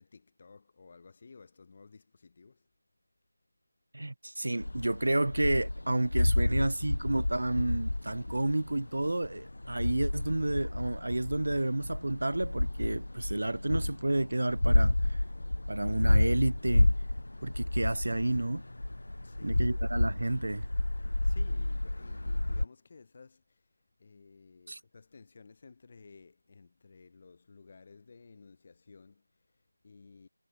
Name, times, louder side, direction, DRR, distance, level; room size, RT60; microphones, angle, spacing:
voice 1, 0.0-2.7 19.2-19.6 21.0-30.3, left 4 dB, 30° left, 6.3 m, -55 dB
voice 2, 3.9-15.2 15.7-16.9 17.4-18.6 19.4-20.7 24.7-24.8, right 2 dB, 65° right, 0.8 m, -30 dB
sound 1, 4.6-22.6, left 1 dB, 70° left, 0.6 m, -30 dB
figure-of-eight pair, 170°, 0 cm